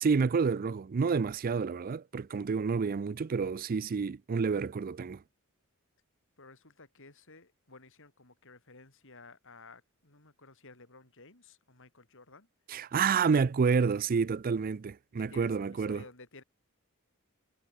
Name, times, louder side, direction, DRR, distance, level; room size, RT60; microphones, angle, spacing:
voice 1, 0.0-5.2 12.7-16.0, right 5 dB, 40° right, 0.4 m, -29 dB
voice 2, 6.4-12.5 15.2-16.4, left 3 dB, 65° left, 6.7 m, -54 dB
head